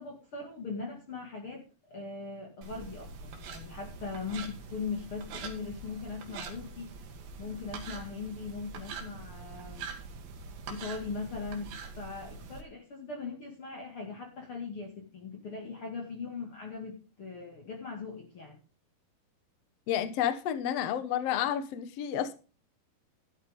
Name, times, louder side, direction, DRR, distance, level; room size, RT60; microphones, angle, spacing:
voice 1, 0.0-6.9 7.4-9.9 10.7-18.6, left 4 dB, 40° left, 2.8 m, -40 dB
sound 1, 2.6-12.6, right 5 dB, 85° right, 3.7 m, -44 dB
voice 2, 19.9-22.3, left 10 dB, 60° left, 1.8 m, -30 dB
13.0 x 11.5 x 3.7 m
omnidirectional pair, 4.1 m